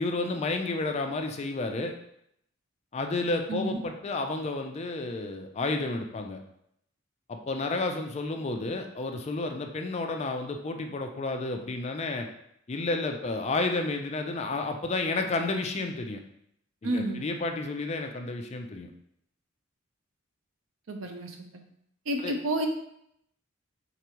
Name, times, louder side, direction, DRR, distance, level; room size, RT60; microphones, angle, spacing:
voice 1, 0.0-1.9 2.9-6.4 7.3-12.3 12.7-16.2 16.8-18.9 22.2-22.3, left 3 dB, 30° left, 4 dB, 0.4 m, -31 dB
voice 2, 3.5-3.8 16.8-17.2 20.9-21.4 22.1-22.7, right 1 dB, 75° right, 4 dB, 0.7 m, -30 dB
4.8 x 3.3 x 3.0 m, 0.74 s
head